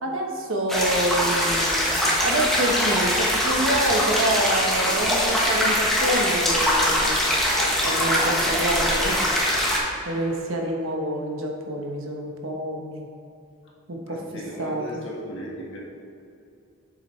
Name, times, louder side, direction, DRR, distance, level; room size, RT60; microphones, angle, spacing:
voice 1, 0.0-1.8 2.2-7.1 7.6-9.3 10.0-13.1 13.9-15.0, right 1 dB, 70° right, 1 dB, 1.1 m, -27 dB
sound 1, 0.7-9.8, equal, ahead, 1.2 m, -22 dB
voice 2, 14.1-15.8, equal, 60° left, -4 dB, 1.7 m, -36 dB
8.0 x 7.3 x 3.2 m, 2.6 s
head